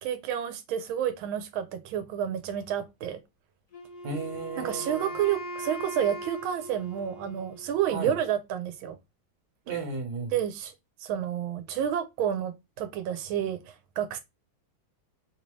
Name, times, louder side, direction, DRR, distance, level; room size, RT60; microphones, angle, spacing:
voice 1, 0.0-3.2 4.6-9.0 10.3-10.7 11.0-14.2, right 10 dB, 90° right, 1.5 m, -30 dB
Wind instrument woodwind instrument, 3.7-7.8, right 1 dB, 55° left, 1.6 m, -39 dB
voice 2, 4.0-5.1 7.9-8.1 9.7-10.3, right 3 dB, 60° right, 1.5 m, -34 dB
3.7 x 2.7 x 3.0 m
omnidirectional pair, 2.2 m